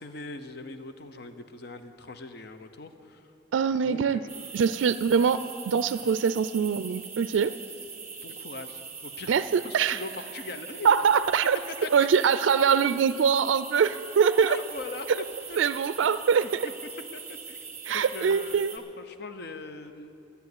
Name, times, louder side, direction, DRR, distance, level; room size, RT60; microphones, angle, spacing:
voice 1, 0.0-3.3 3.7-4.5 8.2-9.3 9.6-10.9 11.8-12.1 14.4-15.1 15.5-15.6 16.6-16.7 17.1-17.7 17.9-20.2, left 3 dB, 60° left, 9 dB, 0.8 m, -41 dB
voice 2, 3.5-4.2 4.5-5.4 5.7-7.5 9.3-10.0 10.8-11.6 11.9-14.6 15.6-16.7 17.9-18.7, right 6 dB, 85° right, 14 dB, 0.3 m, -23 dB
sound 1, 4.3-18.8, right 5 dB, 15° right, 1.5 m, -42 dB
13.0 x 8.2 x 9.6 m, 2.7 s
head